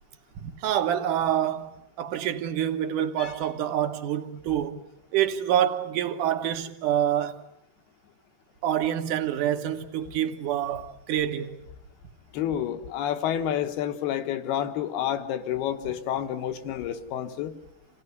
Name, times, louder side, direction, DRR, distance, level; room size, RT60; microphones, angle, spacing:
voice 1, 0.4-4.8 5.1-7.4 8.6-11.6, right 10 dB, 65° right, 2.4 m, -27 dB
voice 2, 12.3-17.5, left 10 dB, 80° left, 3.3 m, -29 dB
27.5 x 17.5 x 9.4 m
omnidirectional pair, 4.5 m